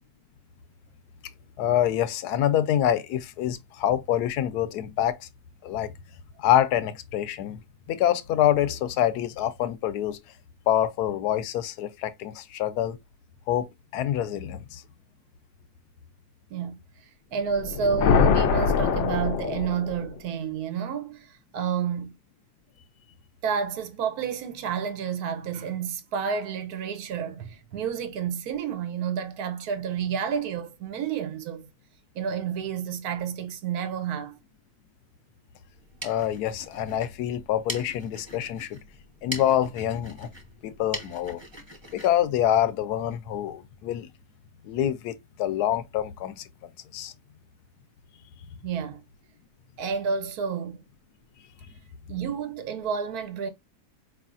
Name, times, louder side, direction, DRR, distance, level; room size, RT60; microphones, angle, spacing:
voice 1, 1.6-5.3 5.6-5.9 6.4-7.6 7.9-10.2 10.7-13.0 13.5-13.7 13.9-14.8 36.0-38.8 39.2-40.3 40.6-41.4 41.9-44.1 44.6-46.5 46.9-47.1, left 11 dB, 80° left, 1.2 m, -26 dB
voice 2, 17.3-22.1 23.4-31.7 32.1-34.4 48.6-49.0 49.8-50.8 52.1-53.5, right 7 dB, 70° right, 1.2 m, -30 dB
sound 1, 17.5-20.2, left 6 dB, 65° left, 0.7 m, -23 dB
sound 2, 35.7-43.2, right 1 dB, 20° right, 1.0 m, -42 dB
4.8 x 3.2 x 2.4 m
omnidirectional pair, 1.7 m